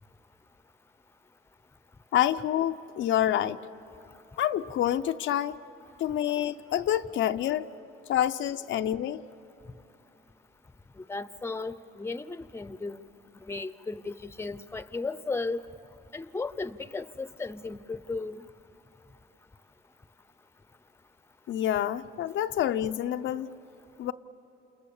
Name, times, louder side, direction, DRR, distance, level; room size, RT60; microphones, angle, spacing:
voice 1, 2.1-3.7 4.4-5.6 6.0-7.7 8.1-9.2 21.5-23.6 24.0-24.1, left 11 dB, 75° left, 0.6 m, -27 dB
voice 2, 11.0-13.0 13.4-15.6 16.1-18.4, left 3 dB, 15° left, 0.7 m, -35 dB
29.0 x 29.0 x 7.1 m
cardioid pair, 90°, 20 cm